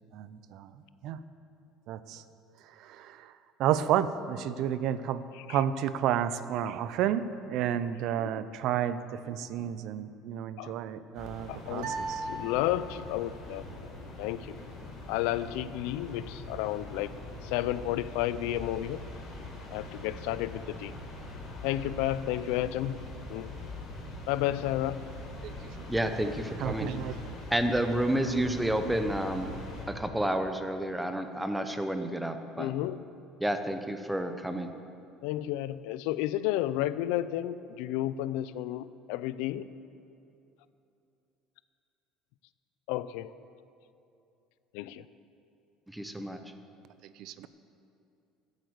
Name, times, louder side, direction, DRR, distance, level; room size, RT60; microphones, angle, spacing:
voice 1, 0.1-0.7 1.0-1.2 1.9-2.2 2.8-3.3 3.6-5.2 5.5-12.2 26.6-27.2 47.2-47.5, right 10 dB, 50° right, 14 dB, 0.5 m, -31 dB
sound 1, 11.1-29.9, left 2 dB, 35° left, 3.8 m, -43 dB
voice 2, 11.5-11.9 12.3-13.6 14.2-14.6 15.1-17.1 17.4-19.0 19.7-20.9 21.6-23.0 23.3-23.5 24.3-25.0 32.6-33.0 35.2-39.7 42.9-43.3 44.7-45.0, left 14 dB, 80° left, 15 dB, 0.4 m, -32 dB
sound 2, 11.8-13.3, right 3 dB, 85° right, 2.8 m, -37 dB
voice 3, 25.9-26.9 27.5-29.5 29.9-32.7 33.4-34.7 45.9-46.4, right 1 dB, 5° right, 7 dB, 0.6 m, -30 dB
13.0 x 8.1 x 8.0 m, 2.7 s
cardioid pair, 175°, 0 cm